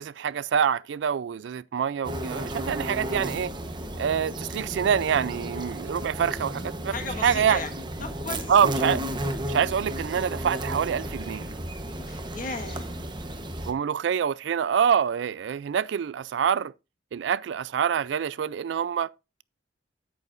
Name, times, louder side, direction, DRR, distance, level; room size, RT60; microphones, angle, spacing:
voice 1, 0.0-3.5 4.0-7.0 7.2-7.6 8.5-9.0 9.5-11.5 13.7-16.7 17.1-19.1, right 7 dB, 70° right, 0.3 m, -26 dB
sound 1, 2.0-13.7, right 1 dB, 25° right, 1.0 m, -33 dB
voice 2, 6.9-7.7 8.0-8.5 12.1-12.9, left 3 dB, 50° left, 1.6 m, -35 dB
9.5 x 8.8 x 2.5 m
head